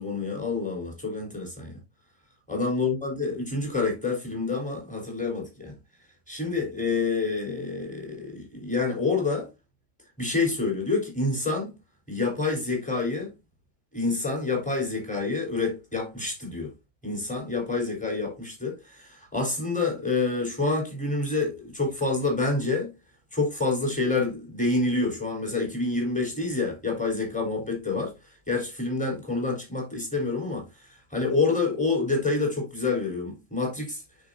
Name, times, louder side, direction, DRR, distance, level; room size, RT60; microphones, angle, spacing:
voice 1, 0.0-1.8 2.5-5.7 6.3-9.5 10.2-11.7 12.1-13.3 13.9-16.7 17.0-22.9 23.3-28.1 28.5-30.7 31.1-34.0, left 3 dB, 5° left, 3.8 m, -27 dB
9.0 x 6.1 x 2.6 m
omnidirectional pair, 1.8 m